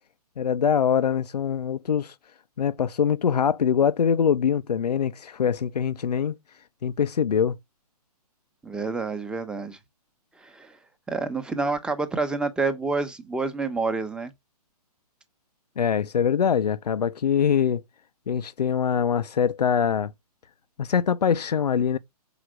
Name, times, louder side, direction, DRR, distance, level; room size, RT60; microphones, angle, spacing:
voice 1, 0.4-2.1 2.6-6.3 6.8-7.6 15.8-17.8 18.3-20.1 20.8-22.0, left 7 dB, 80° left, 0.7 m, -23 dB
voice 2, 8.6-9.8 10.4-10.8 11.1-14.3, right 3 dB, 5° right, 1.0 m, -28 dB
7.2 x 5.0 x 6.3 m
hypercardioid pair, 145°, 20 cm